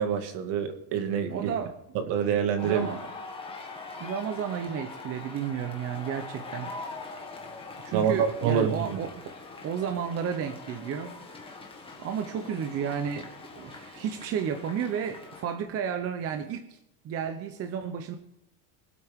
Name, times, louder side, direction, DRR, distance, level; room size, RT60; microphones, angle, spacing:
voice 1, 0.0-1.5 1.9-2.9 7.9-9.0, right 7 dB, 55° right, 6 dB, 2.2 m, -27 dB
voice 2, 1.3-1.8 2.6-3.0 4.0-6.7 7.8-9.4 9.6-11.2 12.0-13.3 13.6-16.8 17.0-18.2, right 8 dB, 30° right, 7 dB, 0.8 m, -32 dB
sound 1, 2.6-15.4, left 3 dB, 10° left, 1.8 m, -43 dB
24.0 x 8.4 x 3.6 m, 0.83 s
cardioid pair, 165°, 50 cm